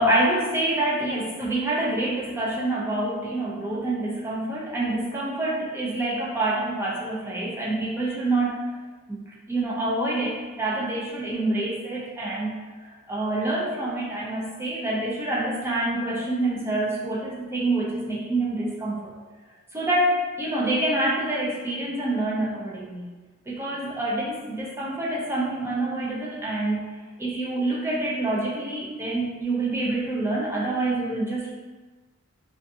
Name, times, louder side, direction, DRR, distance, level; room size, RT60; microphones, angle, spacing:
voice 1, 0.0-8.6 9.1-9.2 9.5-19.1 19.7-23.1 23.5-26.8 27.2-31.5, right 2 dB, 10° right, -6 dB, 0.5 m, -26 dB
2.4 x 2.4 x 2.6 m, 1.3 s
head